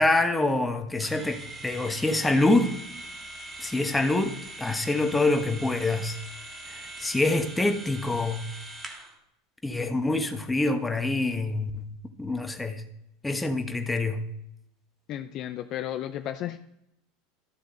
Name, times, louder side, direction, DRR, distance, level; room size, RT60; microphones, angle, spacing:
voice 1, 0.0-2.7 3.6-6.1 6.7-8.4 9.6-11.9 12.2-12.8 13.2-14.2, left 2 dB, 10° left, 6 dB, 1.2 m, -26 dB
sound 1, 1.0-9.2, right 2 dB, 25° right, 1.7 m, -42 dB
voice 2, 15.1-16.6, left 12 dB, 45° left, 10 dB, 0.5 m, -33 dB
13.0 x 6.8 x 3.9 m, 0.80 s
hypercardioid pair, 80°, 0 cm